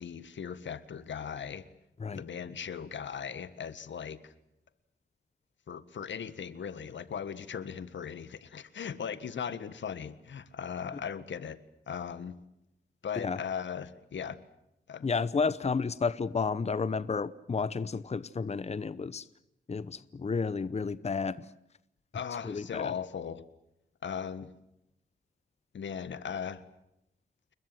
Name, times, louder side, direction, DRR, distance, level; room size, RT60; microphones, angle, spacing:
voice 1, 0.0-1.6 2.1-4.3 5.7-11.6 11.9-12.3 13.0-14.4 14.9-15.1 22.1-23.5 24.0-24.5 25.7-26.6, left 7 dB, 90° left, 14 dB, 1.6 m, -38 dB
voice 2, 15.0-19.3 19.7-21.4 22.4-22.9, left 5 dB, 35° left, 16 dB, 0.9 m, -31 dB
29.0 x 22.0 x 7.7 m, 0.85 s
wide cardioid pair, 125°, 19 cm